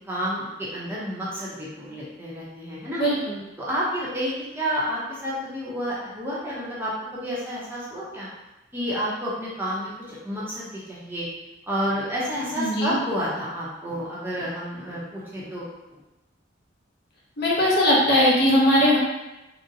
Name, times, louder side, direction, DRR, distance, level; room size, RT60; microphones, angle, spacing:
voice 1, 0.1-3.0 3.6-8.3 8.7-11.3 11.7-16.0, equal, 10° right, -8 dB, 0.6 m, -30 dB
voice 2, 3.0-3.3 12.6-13.0 17.4-19.0, equal, 50° left, -4 dB, 0.7 m, -19 dB
3.8 x 2.0 x 2.7 m, 1.0 s
head